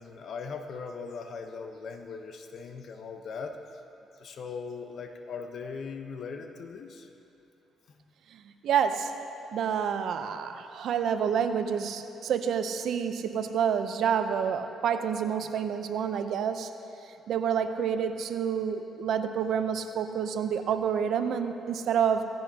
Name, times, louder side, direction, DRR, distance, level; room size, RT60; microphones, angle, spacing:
voice 1, 0.0-3.8 4.2-7.1 7.9-8.0, left 5 dB, 60° left, 5 dB, 1.0 m, -39 dB
voice 2, 8.3-9.1 9.5-16.7 17.3-22.2, right 7 dB, 70° right, 8 dB, 0.7 m, -28 dB
17.5 x 15.0 x 2.9 m, 2.8 s
cardioid pair, 90°, 0 cm